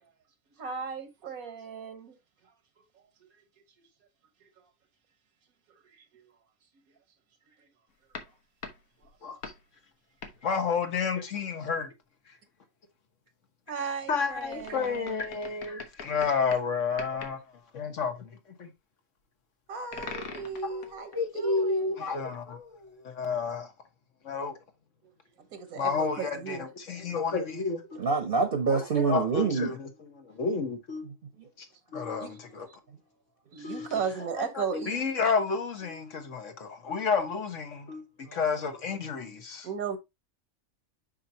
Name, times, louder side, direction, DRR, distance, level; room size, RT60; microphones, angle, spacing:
voice 1, 0.6-2.1 13.7-15.2 19.7-22.0 25.5-26.7 32.2-32.3 33.5-35.1 39.6-40.0, right 6 dB, 85° right, 1.5 m, -35 dB
sound 1, 8.1-9.7 10.2-10.5 14.2-16.7 17.0-17.4 19.9-21.2 22.6-22.7, left 4 dB, 80° left, 1.6 m, -43 dB
voice 2, 10.4-11.9 14.1-17.4 17.7-18.7 20.7-23.7 24.2-24.5 25.7-28.0 28.7-31.1 31.6-31.7 31.9-32.7 33.6-33.9 34.4-38.0 38.3-39.7, left 5 dB, 60° left, 1.5 m, -31 dB
voice 3, 28.0-29.7, right 5 dB, 45° right, 0.9 m, -25 dB
6.5 x 5.6 x 2.7 m
omnidirectional pair, 1.5 m